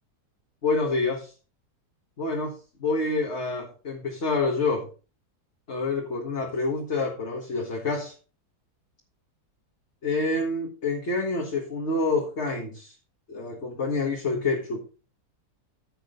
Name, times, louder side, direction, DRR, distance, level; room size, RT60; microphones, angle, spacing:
voice 1, 0.6-1.3 2.2-4.9 5.7-8.1 10.0-12.9 13.3-14.8, left 3 dB, 45° left, 1.8 m, -27 dB
14.5 x 6.3 x 3.8 m
omnidirectional pair, 1.8 m